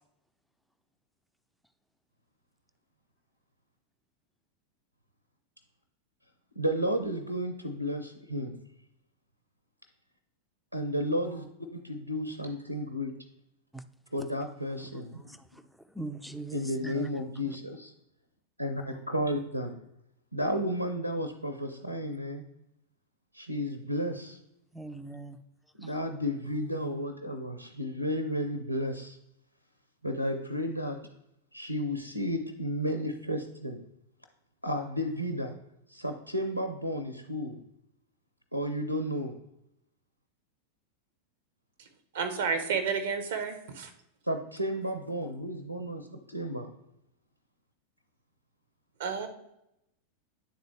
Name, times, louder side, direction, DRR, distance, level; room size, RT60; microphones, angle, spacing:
voice 1, 6.6-8.6 10.7-11.5 11.7-13.2 14.1-15.4 16.5-17.9 18.6-19.8 20.3-22.5 23.3-24.4 25.8-29.2 30.0-31.1 31.5-33.8 34.6-35.5 35.9-37.6 38.5-39.4 44.3-46.7, equal, 90° left, 7 dB, 0.5 m, -32 dB
voice 2, 15.9-17.1 24.7-25.4 25.8-25.9, right 2 dB, ahead, 10 dB, 0.4 m, -40 dB
voice 3, 42.1-43.9 49.0-49.3, right 5 dB, 55° right, 6 dB, 0.9 m, -30 dB
9.5 x 3.9 x 3.2 m, 0.82 s
figure-of-eight pair, 90°, 0 cm